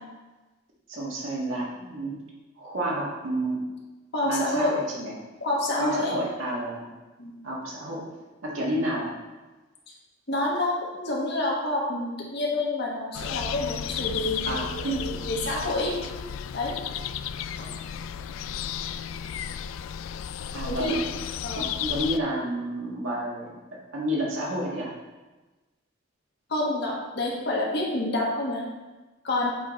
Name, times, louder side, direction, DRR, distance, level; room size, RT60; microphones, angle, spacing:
voice 1, 0.9-2.2 2.6-3.6 4.3-5.1 5.8-6.9 7.4-8.0 8.4-9.1 14.4-15.1 20.5-21.0 21.6-23.5 23.9-24.9, right 1 dB, 90° right, -4 dB, 1.6 m, -30 dB
voice 2, 4.1-4.7 5.4-6.2 7.2-7.3 10.3-15.9 16.5-16.7 17.6-17.7 20.7-21.0 21.4-21.7 26.5-28.6 29.2-29.5, left 2 dB, 60° left, -3 dB, 1.5 m, -28 dB
sound 1, 13.1-22.2, left 8 dB, 90° left, 0.3 m, -33 dB
7.8 x 3.8 x 4.0 m, 1.2 s
head